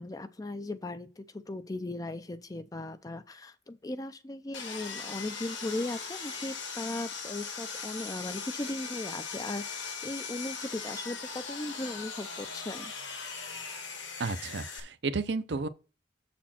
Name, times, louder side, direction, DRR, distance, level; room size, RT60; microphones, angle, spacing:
voice 1, 0.0-12.9, left 2 dB, 20° left, 0.4 m, -38 dB
Sawing, 4.5-14.8, left 5 dB, 80° left, 1.6 m, -39 dB
voice 2, 14.2-15.7, right 4 dB, 65° right, 0.6 m, -32 dB
7.1 x 4.3 x 5.8 m
head